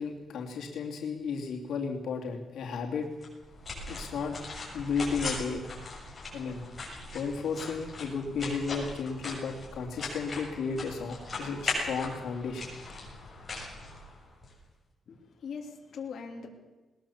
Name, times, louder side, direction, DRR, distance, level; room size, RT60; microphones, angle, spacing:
voice 1, 0.0-3.1 3.9-4.4 4.7-5.6 6.3-6.6 7.1-12.7, left 5 dB, 85° left, 0 dB, 2.8 m, -33 dB
sound 1, 3.2-14.5, left 2 dB, 20° left, 7.0 m, -39 dB
voice 2, 15.1-16.5, left 5 dB, 55° left, 1 dB, 3.2 m, -41 dB
20.5 x 20.0 x 7.3 m, 1.1 s
wide cardioid pair, 165°, 0 cm